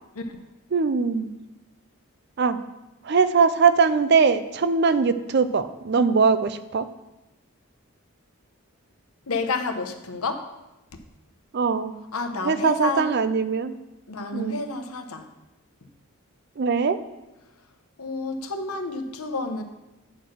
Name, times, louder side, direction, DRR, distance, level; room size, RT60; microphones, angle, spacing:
voice 1, 0.7-1.3 2.4-2.6 3.0-6.9 11.5-12.0 12.4-13.8 14.3-14.6 16.6-17.0, right 5 dB, 50° right, 12 dB, 0.4 m, -21 dB
voice 2, 9.3-10.5 12.1-13.1 14.1-15.3 18.0-19.6, left 3 dB, 80° left, 7 dB, 0.9 m, -29 dB
8.7 x 4.7 x 6.2 m, 0.98 s
head